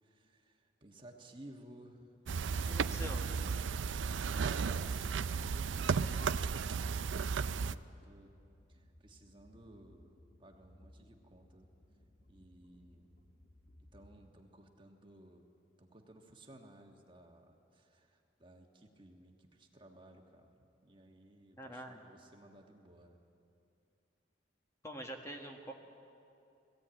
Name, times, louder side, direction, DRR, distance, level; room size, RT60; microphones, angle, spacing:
voice 1, 0.0-2.1 4.2-6.7 7.0-8.3 8.7-10.1 10.4-11.7 12.3-13.1 13.9-15.4 15.8-20.6 20.8-23.2, right 1 dB, 25° right, 2 dB, 1.4 m, -57 dB
sound 1, 2.3-7.7, right 5 dB, 85° right, 0.5 m, -34 dB
voice 2, 2.5-3.2 21.6-22.0 24.8-25.7, equal, 15° left, 2 dB, 1.4 m, -45 dB
sound 2, 9.0-14.3, left 1 dB, 55° left, 2.0 m, -62 dB
19.0 x 15.5 x 8.9 m, 2.7 s
head